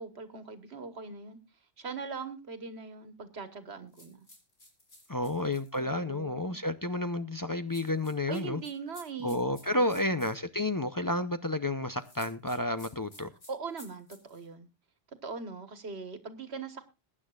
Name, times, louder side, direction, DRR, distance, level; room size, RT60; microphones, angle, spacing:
voice 1, 0.0-1.4 1.8-4.3 5.2-5.5 5.7-6.6 8.3-9.4 9.7-10.1 13.5-14.7 15.2-16.9, right 5 dB, 90° right, 1.7 m, -41 dB
sound 1, 3.9-5.8 7.7-10.4 12.0-14.5, left 1 dB, 85° left, 4.2 m, -54 dB
voice 2, 5.1-8.6 9.2-13.3, left 1 dB, 25° left, 0.5 m, -31 dB
22.0 x 9.8 x 2.4 m
omnidirectional pair, 1.1 m